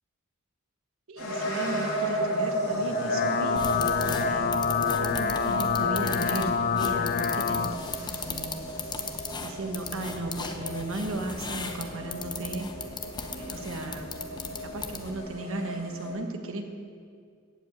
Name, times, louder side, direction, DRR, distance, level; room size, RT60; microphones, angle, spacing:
voice 1, 1.1-4.5 5.0-7.7 8.0-8.7 9.4-12.7 13.3-14.2 14.6-16.6, right 2 dB, 65° right, 5 dB, 1.2 m, -36 dB
sound 1, 1.2-16.1, equal, 90° left, 3.5 m, -34 dB
sound 2, 2.8-7.8, left 6 dB, 45° left, 0.4 m, -27 dB
sound 3, 3.6-15.2, left 4 dB, 20° left, 0.7 m, -38 dB
15.0 x 5.3 x 8.9 m, 2.2 s
head